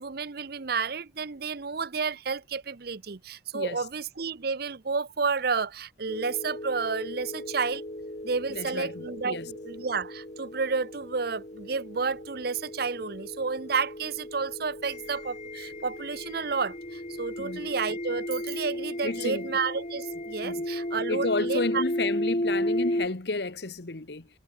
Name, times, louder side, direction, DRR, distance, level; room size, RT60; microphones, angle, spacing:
voice 1, 0.0-7.8 8.2-21.8, right 5 dB, 60° right, 0.8 m, -31 dB
voice 2, 3.5-3.8 8.5-9.5 17.4-17.6 19.0-19.5 20.4-20.6 21.1-24.3, left 3 dB, 65° left, 1.2 m, -32 dB
sound 1, 6.1-23.1, left 1 dB, 40° left, 4.0 m, -34 dB
head